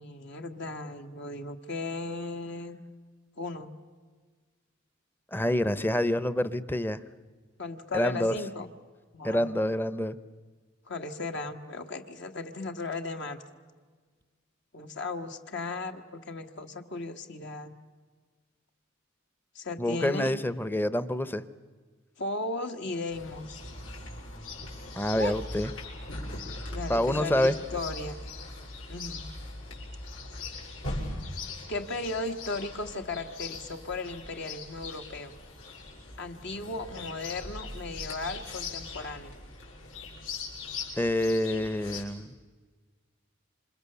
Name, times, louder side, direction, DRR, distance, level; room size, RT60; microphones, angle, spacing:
voice 1, 0.0-2.8 3.4-3.7 7.6-8.7 9.1-9.5 10.9-13.4 14.7-17.7 19.5-20.3 22.2-23.6 25.2-25.4 26.7-28.2 28.9-29.2 31.7-35.3 36.2-39.3, left 2 dB, 60° left, 5 dB, 1.5 m, -36 dB
voice 2, 5.3-7.0 7.9-8.3 9.2-10.2 19.8-21.4 25.0-25.7 26.9-27.5 41.0-42.3, left 1 dB, 10° left, 15 dB, 0.8 m, -27 dB
Chirp tweet, 23.1-42.0, left 3 dB, 75° left, 6.8 m, -40 dB
28.0 x 26.5 x 6.9 m, 1.5 s
head